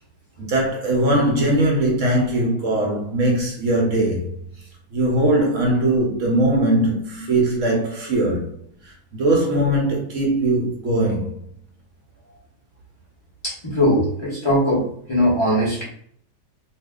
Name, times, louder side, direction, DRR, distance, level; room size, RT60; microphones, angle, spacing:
voice 1, 0.4-4.4 4.9-8.6 8.8-11.4, right 1 dB, 60° right, 0.9 m, -20 dB
voice 2, 13.4-15.8, equal, 25° left, 0.7 m, -20 dB
2.7 x 2.4 x 3.5 m
omnidirectional pair, 1.9 m